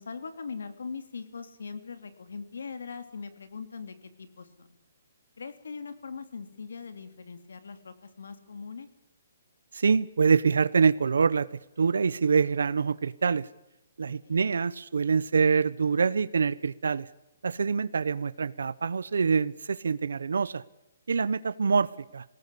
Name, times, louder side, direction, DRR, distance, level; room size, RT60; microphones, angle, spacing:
voice 1, 0.0-4.8 5.4-8.9 14.2-14.4, left 5 dB, 85° left, 10 dB, 3.0 m, -41 dB
voice 2, 9.7-11.5 11.8-13.5 14.0-17.1 17.4-20.6 21.1-22.2, right 5 dB, 90° right, 17 dB, 0.8 m, -25 dB
21.0 x 18.5 x 8.4 m, 0.90 s
hypercardioid pair, 170°, 0 cm